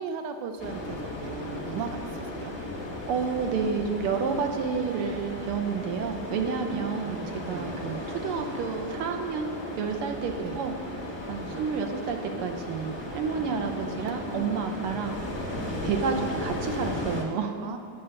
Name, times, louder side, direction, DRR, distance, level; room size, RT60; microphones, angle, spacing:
voice 1, 0.0-2.5 6.7-7.8 10.4-10.6 11.4-11.6 15.6-15.9 17.6-17.8, right 5 dB, 70° right, 7 dB, 1.1 m, -38 dB
sound 1, 0.6-17.2, left 1 dB, 35° left, 0.4 m, -36 dB
voice 2, 3.1-11.0 11.2-15.2 15.8-17.7, right 5 dB, 85° right, 4 dB, 1.7 m, -30 dB
8.9 x 5.8 x 6.5 m, 2.3 s
omnidirectional pair, 2.4 m